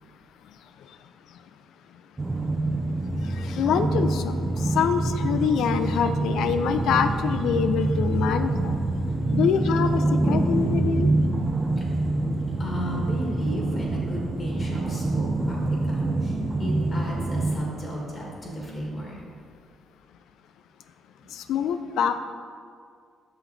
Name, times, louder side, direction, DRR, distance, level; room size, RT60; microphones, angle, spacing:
sound 1, 2.2-17.6, right 2 dB, 25° right, 0.6 m, -26 dB
voice 1, 3.4-8.8 9.3-11.1 21.3-22.2, left 7 dB, 80° left, 9 dB, 0.3 m, -25 dB
voice 2, 8.9-9.4 11.5-19.2 21.2-21.3, equal, 45° left, -2 dB, 1.9 m, -34 dB
6.9 x 5.8 x 4.1 m, 2.2 s
cardioid pair, 90°, 0 cm